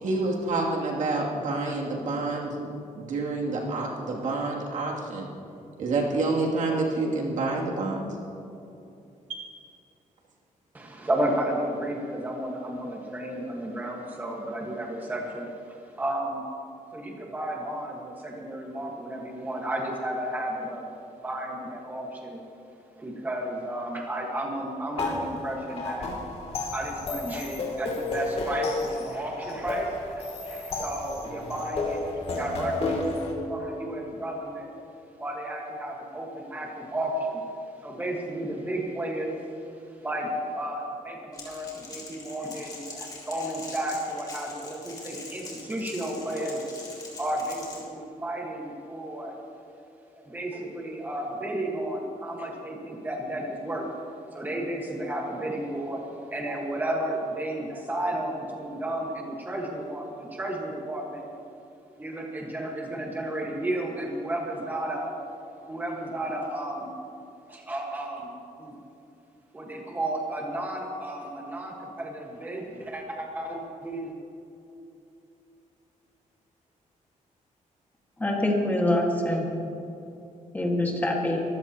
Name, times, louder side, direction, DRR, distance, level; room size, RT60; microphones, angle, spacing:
voice 1, 0.0-2.6 3.0-5.3 5.8-8.1 9.3-9.4, right 3 dB, 70° right, -2 dB, 2.7 m, -28 dB
voice 2, 10.7-16.4 16.9-20.9 21.2-22.4 23.0-26.1 26.7-33.1 33.5-34.7 35.2-37.4 37.8-39.4 40.0-40.3 40.5-46.6 46.9-49.4 50.1-53.9 54.3-56.0 56.3-61.3 62.0-65.1 65.7-66.9 67.5-68.7 69.5-74.1, right 1 dB, 15° right, -1 dB, 1.5 m, -33 dB
sound 1, 25.0-33.3, left 2 dB, 50° left, 2.6 m, -32 dB
Crackle, 41.3-47.8, left 3 dB, 30° left, 3.2 m, -43 dB
voice 3, 78.2-79.5 80.5-81.4, left 1 dB, 10° left, -1 dB, 1.7 m, -25 dB
24.0 x 15.5 x 2.9 m, 2.7 s
wide cardioid pair, 175°, 13 cm